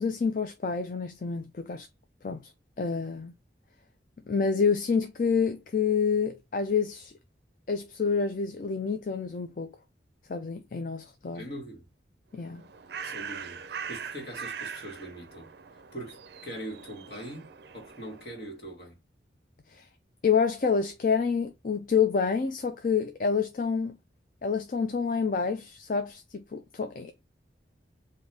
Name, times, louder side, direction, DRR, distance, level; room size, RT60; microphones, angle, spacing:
voice 1, 0.0-1.9 2.2-2.5 2.8-3.3 4.3-7.1 7.7-9.7 10.3-11.4 12.3-12.6 19.7-19.8 20.2-24.0 24.4-27.2, left 5 dB, 45° left, 0.4 m, -28 dB
voice 2, 11.3-11.9 13.0-15.5 15.9-17.5 17.7-19.0, right 1 dB, 60° left, 1.6 m, -42 dB
Bird, 12.4-18.4, right 6 dB, 60° right, 0.4 m, -41 dB
3.9 x 2.6 x 3.3 m
head